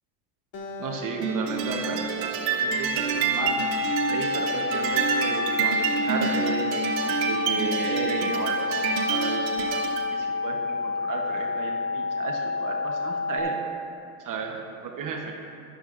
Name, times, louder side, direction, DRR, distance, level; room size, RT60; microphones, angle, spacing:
Acoustic guitar, 0.5-3.9, equal, 45° left, 1.8 m, -42 dB
voice 1, 0.8-3.6 4.1-6.6 7.2-9.8 10.1-13.6 14.2-15.3, right 5 dB, 40° right, 1 dB, 1.0 m, -34 dB
sound 1, 1.2-10.1, right 5 dB, 90° right, 1.4 m, -27 dB
sound 2, 3.4-13.4, left 4 dB, 20° left, 1.4 m, -29 dB
14.0 x 11.0 x 2.5 m, 2.7 s
supercardioid pair, 115°, 48 cm